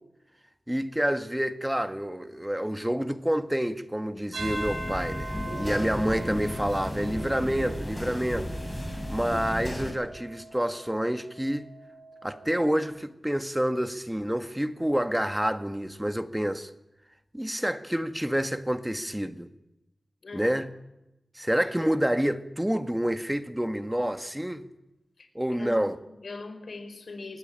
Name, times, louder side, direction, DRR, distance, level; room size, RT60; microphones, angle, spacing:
voice 1, 0.7-8.5 9.1-11.7 12.2-16.7 17.3-19.5 20.3-20.7 21.3-24.7 25.3-26.0, equal, 10° right, 1.7 m, -28 dB
sound 1, 4.3-12.8, right 2 dB, 85° right, 5.2 m, -42 dB
sound 2, 4.4-9.9, left 1 dB, 10° left, 7.3 m, -34 dB
voice 2, 25.6-27.4, left 3 dB, 75° left, 4.9 m, -41 dB
23.5 x 19.5 x 9.0 m
wide cardioid pair, 75°, 0 cm